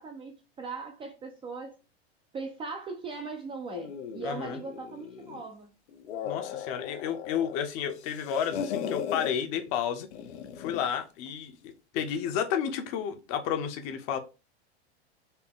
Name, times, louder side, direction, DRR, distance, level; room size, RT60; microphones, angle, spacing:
voice 1, 0.0-1.8 2.3-5.7, right 4 dB, 15° right, 0.4 m, -39 dB
sound 1, 3.7-5.5 5.9-7.6 7.9-9.3 10.1-10.9, left 8 dB, 85° left, 0.6 m, -37 dB
voice 2, 4.2-4.6 6.2-10.1 10.6-14.2, left 8 dB, 45° left, 0.7 m, -31 dB
4.1 x 2.2 x 3.5 m
hypercardioid pair, 120°, 33 cm